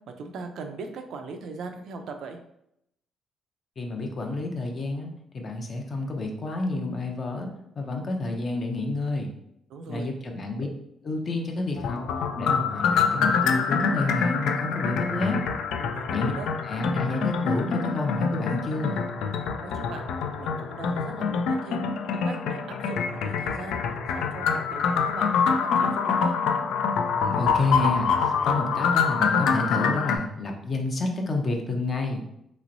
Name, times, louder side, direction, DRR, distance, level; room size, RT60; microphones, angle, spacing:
voice 1, 0.1-2.4 9.7-10.1 15.8-16.5 19.6-20.1 20.4-21.8 22.2-23.8 24.1-26.3, right 4 dB, 75° right, 5 dB, 0.4 m, -39 dB
voice 2, 3.8-7.5 7.8-9.3 9.9-10.7 11.0-12.0 12.4-15.4 16.1-16.3 16.7-19.0 27.2-32.2, left 2 dB, 45° left, 2 dB, 0.6 m, -29 dB
sound 1, 11.8-30.2, left 6 dB, 85° left, 0.3 m, -26 dB
3.1 x 2.9 x 2.6 m, 0.77 s
cardioid pair, 90°, 0 cm